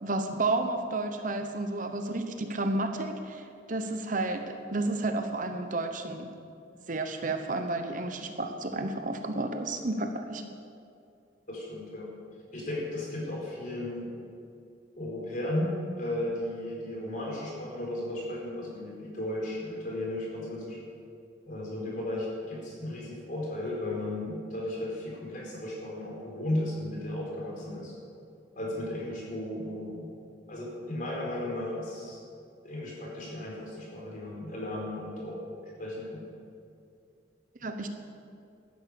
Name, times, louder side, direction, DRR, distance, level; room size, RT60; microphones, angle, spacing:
voice 1, 0.0-6.3 6.9-10.4 37.6-37.9, right 2 dB, 45° right, 6 dB, 1.0 m, -31 dB
voice 2, 11.5-12.1 12.5-14.1 15.0-20.8 21.5-27.9 28.5-30.1 30.5-32.2 32.6-35.4 35.8-36.3, left 1 dB, 45° left, -3 dB, 4.9 m, -35 dB
13.0 x 10.5 x 8.5 m, 2.4 s
head